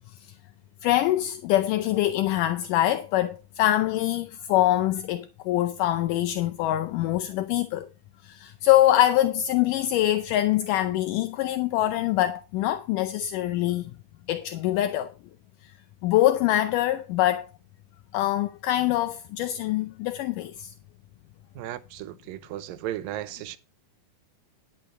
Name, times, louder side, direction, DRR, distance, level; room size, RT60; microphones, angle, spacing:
voice 1, 0.8-7.9 8.2-13.9 14.3-15.1 16.0-17.5 18.1-20.7, left 14 dB, 80° left, 2.1 m, -24 dB
voice 2, 21.6-23.6, right 13 dB, 85° right, 2.5 m, -35 dB
10.5 x 8.7 x 4.2 m
omnidirectional pair, 4.0 m